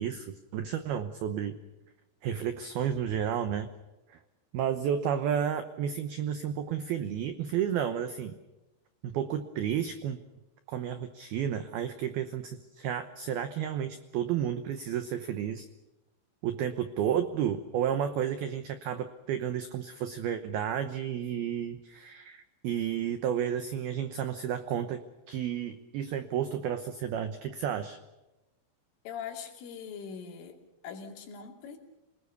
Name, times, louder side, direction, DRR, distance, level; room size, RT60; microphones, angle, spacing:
voice 1, 0.0-1.6 2.2-3.7 4.1-4.2 4.5-8.4 9.0-10.2 10.7-15.7 16.4-25.0 25.3-28.0, right 9 dB, 80° right, 9 dB, 2.2 m, -32 dB
voice 2, 29.0-30.6 30.8-31.8, left 7 dB, 75° left, 3 dB, 5.1 m, -41 dB
27.0 x 19.5 x 6.9 m, 1.0 s
omnidirectional pair, 5.9 m